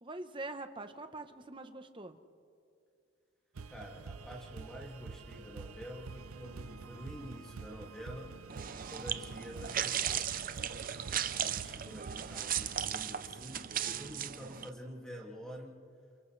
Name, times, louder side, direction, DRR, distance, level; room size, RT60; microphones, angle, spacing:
voice 1, 0.0-2.2 5.6-5.8, right 2 dB, 25° right, 8 dB, 0.9 m, -44 dB
sound 1, 3.6-12.9, right 4 dB, 85° right, 0.6 m, -48 dB
voice 2, 3.7-8.3 8.9-10.3 11.2-15.8, equal, 5° left, -2 dB, 2.1 m, -48 dB
sound 2, 8.5-14.7, right 9 dB, 40° right, 0.6 m, -36 dB
29.5 x 29.5 x 3.3 m, 2.3 s
head